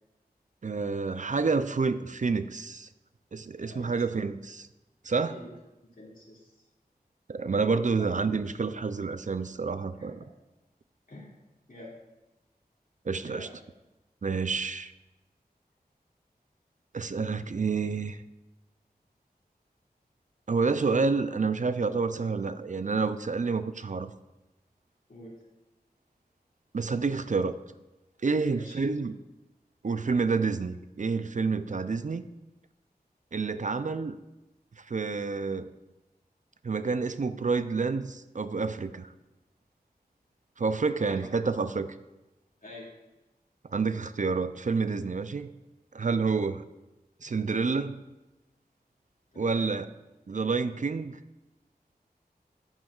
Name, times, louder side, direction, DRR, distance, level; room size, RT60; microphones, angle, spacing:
voice 1, 0.6-2.9 3.3-4.7 5.0-5.4 7.3-10.2 13.1-13.5 14.2-14.9 16.9-18.2 20.5-24.1 26.7-27.6 28.2-29.2 29.8-32.2 33.3-34.2 34.8-35.7 36.6-39.1 40.6-41.9 43.7-45.5 45.9-46.6 47.2-48.0 49.4-49.9 50.3-51.2, right 4 dB, 50° right, 12 dB, 0.4 m, -28 dB
voice 2, 3.6-4.0 5.1-5.5 6.0-6.5 8.0-8.1 9.9-10.1 11.1-11.3 11.7-12.0 13.2-13.5 25.1-25.4 28.5-28.7 41.0-41.4 42.6-42.9 49.3-49.7, left 1 dB, 60° left, -4 dB, 2.4 m, -46 dB
10.5 x 8.6 x 2.4 m, 1.0 s
wide cardioid pair, 45°, 17 cm